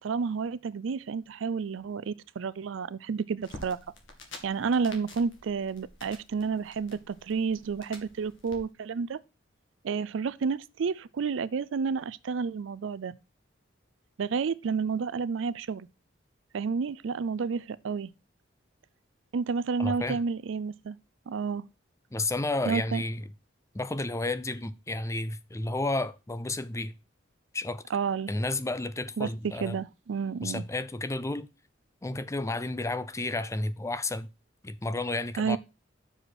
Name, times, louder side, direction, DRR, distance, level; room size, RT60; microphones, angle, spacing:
voice 1, 0.0-3.8 4.4-9.2 9.8-13.1 14.2-15.9 16.5-18.1 19.3-21.0 21.3-21.7 22.7-23.0 27.9-28.3 29.2-30.6 35.4-35.6, right 5 dB, 70° right, 0.4 m, -30 dB
sound 1, 3.4-8.6, left 2 dB, 70° left, 2.0 m, -49 dB
voice 2, 19.8-20.2 22.1-23.3 23.7-26.9 27.5-27.8 28.3-29.8 30.4-31.5 32.0-34.3 34.6-35.6, left 2 dB, 15° left, 0.5 m, -31 dB
6.4 x 5.0 x 6.1 m
head